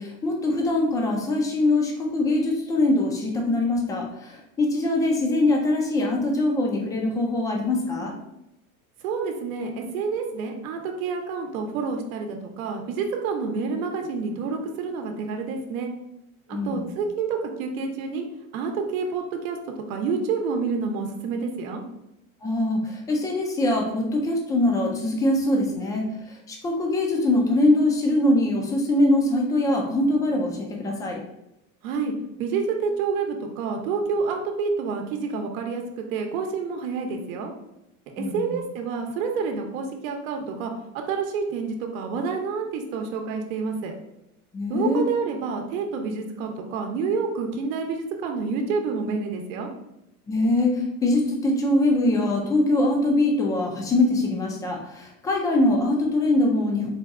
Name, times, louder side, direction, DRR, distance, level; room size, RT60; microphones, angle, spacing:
voice 1, 0.0-8.1 16.5-16.9 22.4-26.1 26.5-31.2 38.2-38.6 44.5-45.0 50.3-56.9, left 2 dB, 10° left, 1 dB, 0.3 m, -23 dB
voice 2, 9.0-15.9 16.5-18.2 18.5-19.6 19.9-21.8 31.8-32.1 32.4-37.5 38.2-40.7 41.1-43.9 44.7-49.7, right 5 dB, 75° right, 3 dB, 0.8 m, -28 dB
4.1 x 2.2 x 3.5 m, 0.85 s
supercardioid pair, 140°, 41 cm